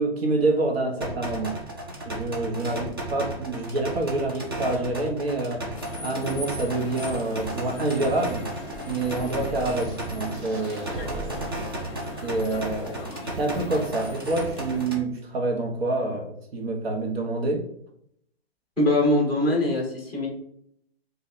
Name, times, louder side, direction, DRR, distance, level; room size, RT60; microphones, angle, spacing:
voice 1, 0.0-1.5 2.0-5.6 6.0-8.5 8.9-11.5 12.2-13.1 13.4-17.6, right 2 dB, 75° right, 1 dB, 1.3 m, -27 dB
sound 1, 1.0-15.0, right 1 dB, 25° right, 0.4 m, -34 dB
sound 2, 5.8-14.9, left 2 dB, 30° left, 0.7 m, -40 dB
sound 3, 6.7-11.7, right 3 dB, 50° right, 0.8 m, -41 dB
voice 2, 18.8-20.3, left 1 dB, 5° right, -3 dB, 0.8 m, -22 dB
3.2 x 2.7 x 4.1 m, 0.69 s
hypercardioid pair, 170°, 31 cm